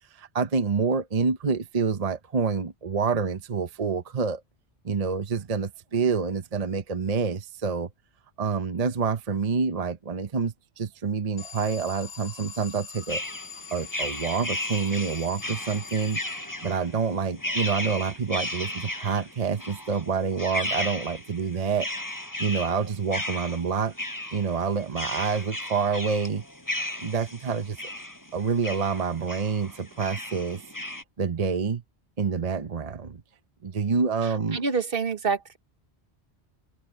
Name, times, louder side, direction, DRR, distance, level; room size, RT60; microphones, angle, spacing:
voice 1, 0.2-4.4 4.8-7.9 8.4-13.2 13.7-16.2 16.6-21.9 22.4-23.9 24.3-26.4 27.0-27.8 28.3-30.6 31.2-31.8 32.2-33.2 33.6-34.6, right 5 dB, 40° right, 0.9 m, -27 dB
Alarm, 11.4-16.9, left 6 dB, 75° left, 7.3 m, -43 dB
sound 1, 13.1-31.0, left 1 dB, 15° left, 5.9 m, -35 dB
voice 2, 34.2-35.6, right 5 dB, 55° right, 1.3 m, -28 dB
omnidirectional pair, 1.1 m